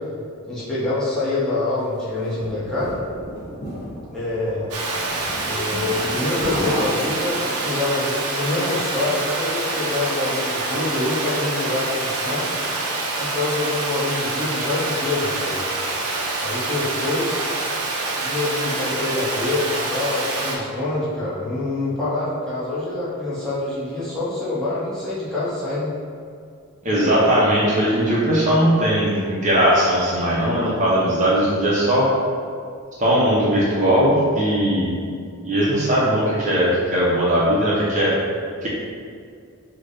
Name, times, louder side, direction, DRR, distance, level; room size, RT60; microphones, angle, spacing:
voice 1, 0.4-3.0 4.1-4.7 5.4-12.5 13.2-15.7 16.4-17.4 18.1-25.9, left 2 dB, 5° left, -11 dB, 0.7 m, -26 dB
sound 1, 1.9-7.8, equal, 50° left, 1.1 m, -32 dB
Water, 4.7-20.6, right 2 dB, 90° right, 0.5 m, -26 dB
voice 2, 26.8-32.1 33.0-35.0 35.4-38.1 38.6-38.7, equal, 35° right, -6 dB, 0.5 m, -19 dB
3.2 x 2.1 x 3.8 m, 2.3 s
head